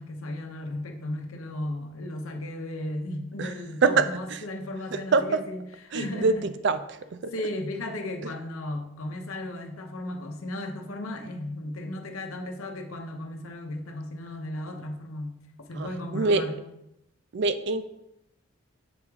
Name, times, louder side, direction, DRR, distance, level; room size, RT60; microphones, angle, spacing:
voice 1, 0.0-5.6 5.9-6.5 7.3-16.5, left 1 dB, 90° left, 4 dB, 0.8 m, -35 dB
voice 2, 3.8-4.4 4.9-5.4 5.9-7.3 15.8-16.4 17.3-17.8, right 4 dB, 55° right, 12 dB, 0.4 m, -25 dB
7.1 x 3.5 x 4.7 m, 0.84 s
head